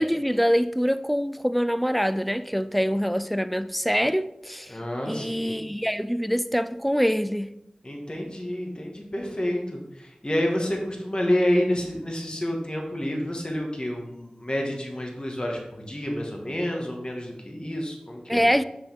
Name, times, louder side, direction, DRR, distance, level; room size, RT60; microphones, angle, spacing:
voice 1, 0.0-4.8 5.1-7.5 18.3-18.6, equal, ahead, 0.4 m, -24 dB
voice 2, 4.7-5.7 7.8-18.4, left 1 dB, 40° left, 1.6 m, -29 dB
6.8 x 6.1 x 3.5 m
wide cardioid pair, 45°, 3 cm